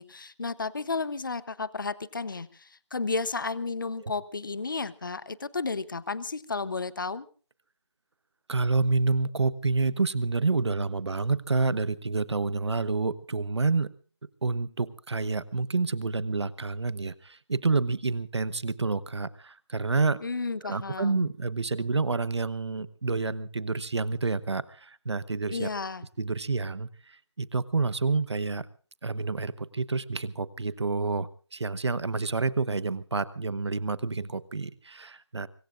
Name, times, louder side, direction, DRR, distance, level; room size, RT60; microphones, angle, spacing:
voice 1, 0.0-7.3 20.2-21.3 25.5-26.1, left 4 dB, 45° left, 18 dB, 0.8 m, -33 dB
voice 2, 8.5-13.9 14.4-20.2 20.6-25.7 26.2-26.9 27.4-28.7 29.0-35.5, right 3 dB, 65° right, 16 dB, 1.1 m, -28 dB
24.0 x 23.0 x 2.5 m, 0.39 s
figure-of-eight pair, 175°, 15 cm